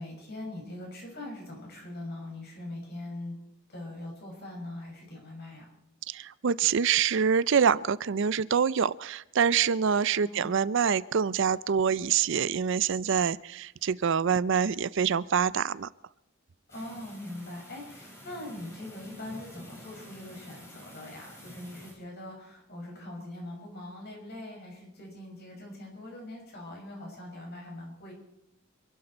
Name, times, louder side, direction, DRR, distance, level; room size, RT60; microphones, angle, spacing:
voice 1, 0.0-3.4 3.7-5.7 10.2-10.6 16.7-28.1, left 1 dB, 50° left, 0 dB, 6.0 m, -42 dB
voice 2, 6.1-15.9, right 7 dB, 65° right, 18 dB, 0.5 m, -26 dB
sound 1, 16.7-21.9, equal, 15° left, 4.1 m, -49 dB
26.5 x 12.0 x 4.4 m, 0.86 s
head